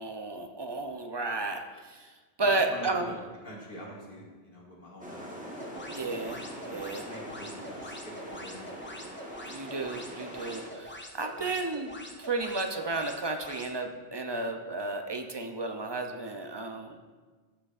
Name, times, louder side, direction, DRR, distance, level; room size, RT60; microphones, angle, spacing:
voice 1, 0.0-2.1 2.4-3.1 5.9-7.0 9.5-16.9, right 3 dB, 45° right, 5 dB, 0.3 m, -33 dB
voice 2, 2.4-3.2 3.4-5.9 6.7-9.1 11.4-11.5, equal, 55° left, -3 dB, 1.9 m, -46 dB
sound 1, 5.0-10.7, equal, 10° right, 1.0 m, -43 dB
sound 2, 5.5-13.7, left 1 dB, 15° left, 0.5 m, -45 dB
9.9 x 7.8 x 2.4 m, 1.4 s
omnidirectional pair, 1.1 m